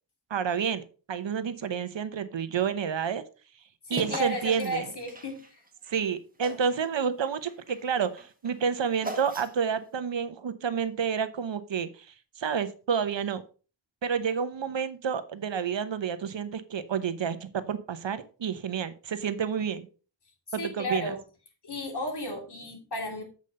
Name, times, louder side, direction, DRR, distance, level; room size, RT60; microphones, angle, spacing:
voice 1, 0.3-3.2 3.9-4.9 5.9-12.1 12.4-13.4 14.0-19.9 20.5-21.1, right 7 dB, 75° right, 12 dB, 0.9 m, -29 dB
voice 2, 3.9-5.6 20.6-21.2 21.6-23.2, left 1 dB, 60° left, 2 dB, 3.0 m, -34 dB
sound 1, 4.0-6.0 6.4-6.9 7.2-9.8, right 2 dB, 20° right, 1.5 m, -40 dB
8.5 x 5.2 x 5.2 m, 0.36 s
wide cardioid pair, 85°, 45 cm